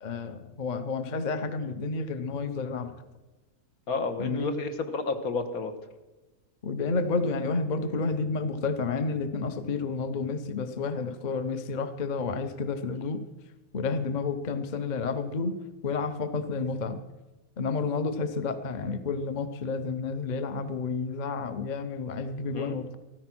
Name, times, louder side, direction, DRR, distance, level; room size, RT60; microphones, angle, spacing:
voice 1, 0.0-2.9 4.2-4.5 6.6-13.2 13.7-15.5 15.8-17.0 17.6-23.0, left 4 dB, 35° left, 11 dB, 0.8 m, -30 dB
voice 2, 3.9-5.7 22.5-22.8, left 3 dB, 75° left, 7 dB, 1.8 m, -31 dB
14.0 x 13.5 x 6.1 m, 1.2 s
omnidirectional pair, 1.6 m